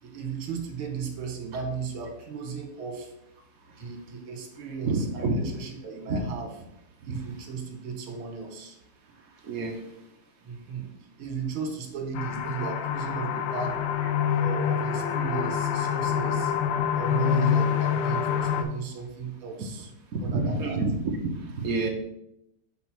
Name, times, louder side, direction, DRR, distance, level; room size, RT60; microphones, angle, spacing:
voice 1, 0.0-3.1 3.8-6.5 7.0-8.8 10.4-13.8 14.4-16.5 17.0-19.9 20.2-20.8, right 6 dB, 80° right, 3 dB, 2.1 m, -35 dB
voice 2, 4.9-5.4 6.1-6.2 9.4-9.8 20.1-20.9 21.2-21.9, right 3 dB, 55° right, 2 dB, 1.0 m, -28 dB
sound 1, 12.1-18.6, left 8 dB, 75° left, 1.1 m, -26 dB
5.3 x 4.1 x 6.1 m, 0.81 s
omnidirectional pair, 2.3 m